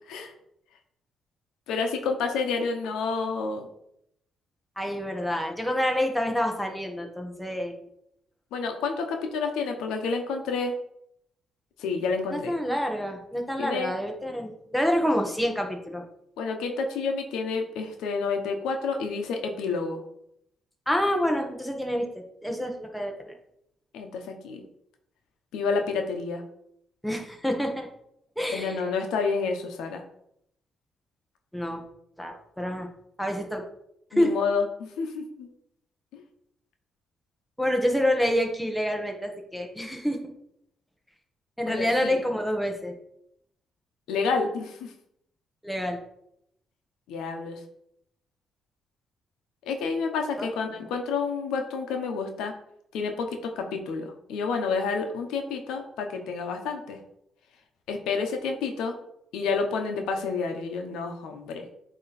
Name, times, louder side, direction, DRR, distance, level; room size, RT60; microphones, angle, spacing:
voice 1, 1.7-3.7 8.5-10.7 11.8-12.5 13.6-13.9 16.4-20.0 23.9-24.6 25.5-26.4 28.5-30.0 34.1-35.5 36.1-36.2 41.7-42.2 44.1-44.9 47.1-47.6 49.6-52.5 52.9-57.0 57.9-58.9 59.3-61.7, left 4 dB, 90° left, 4 dB, 0.9 m, -29 dB
voice 2, 4.8-7.9 12.3-16.0 20.9-23.3 27.0-27.9 28.4-28.9 31.5-31.8 32.2-32.9 33.2-33.6 34.2-34.3 37.6-40.2 41.6-42.9 45.6-46.0 50.4-50.5, equal, ahead, 2 dB, 1.2 m, -27 dB
8.6 x 3.1 x 4.1 m, 0.76 s
cardioid pair, 90°, 0 cm